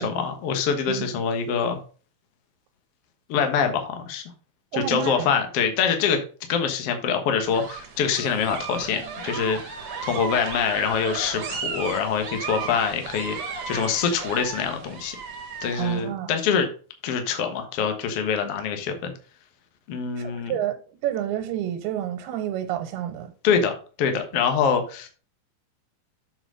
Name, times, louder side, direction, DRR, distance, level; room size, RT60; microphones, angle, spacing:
voice 1, 0.0-1.8 3.3-4.2 4.7-6.2 6.5-13.4 13.7-15.1 15.6-16.7 17.0-19.1 19.9-20.5 23.4-23.7 24.0-25.1, left 6 dB, 60° left, 1.7 m, -25 dB
voice 2, 4.7-5.3 15.8-16.3 20.2-20.8 21.0-23.3, right 11 dB, 90° right, 3.0 m, -29 dB
sound 1, 7.4-16.0, right 5 dB, 50° right, 2.0 m, -35 dB
7.7 x 6.1 x 5.0 m
omnidirectional pair, 4.4 m